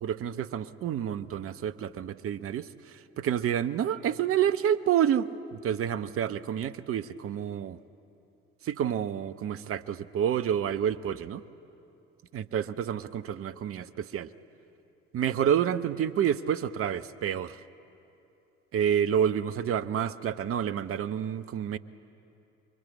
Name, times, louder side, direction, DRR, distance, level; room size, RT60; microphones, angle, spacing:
voice 1, 0.0-7.8 8.6-11.4 12.3-14.3 15.1-17.6 18.7-21.8, right 9 dB, 40° right, 13 dB, 0.9 m, -29 dB
25.0 x 23.0 x 8.5 m, 2.8 s
figure-of-eight pair, 50°, 34 cm